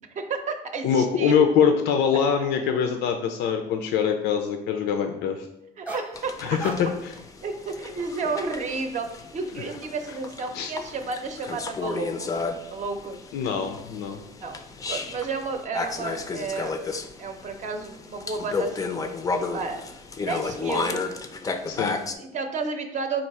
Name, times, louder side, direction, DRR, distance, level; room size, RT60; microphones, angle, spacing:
voice 1, 0.0-1.4 2.4-2.5 5.8-6.3 7.4-9.1 9.3-12.3 12.7-13.2 14.4-14.6 14.9-16.8 17.2-19.0 19.5-19.9 20.3-21.0 22.2-23.2, right 4 dB, 45° right, 6 dB, 0.6 m, -31 dB
voice 2, 0.8-5.5 6.4-7.1 10.5-10.7 13.3-14.2 21.7-22.0, left 7 dB, 85° left, 5 dB, 0.4 m, -23 dB
sound 1, 5.9-6.2 6.6-7.2 7.7-8.0, right 2 dB, 10° right, 0.8 m, -37 dB
sound 2, 6.1-22.1, left 4 dB, 20° left, 0.4 m, -33 dB
4.3 x 2.4 x 4.6 m, 0.84 s
cardioid pair, 110°, 17 cm